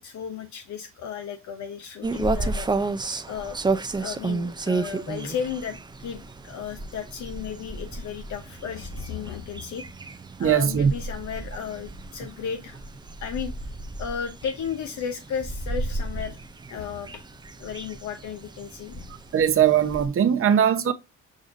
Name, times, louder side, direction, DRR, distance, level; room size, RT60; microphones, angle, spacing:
voice 1, 0.0-2.9 3.3-3.6 3.9-9.8 10.4-12.8 13.2-13.7 14.0-16.4 16.7-17.1 17.6-19.1 20.5-20.6, left 7 dB, 70° left, 0.8 m, -34 dB
sound 1, 2.0-20.1, right 3 dB, 15° right, 0.4 m, -32 dB
voice 2, 10.4-10.9 19.3-20.9, right 8 dB, 45° right, 0.8 m, -20 dB
6.3 x 2.5 x 2.5 m
cardioid pair, 90°, 30 cm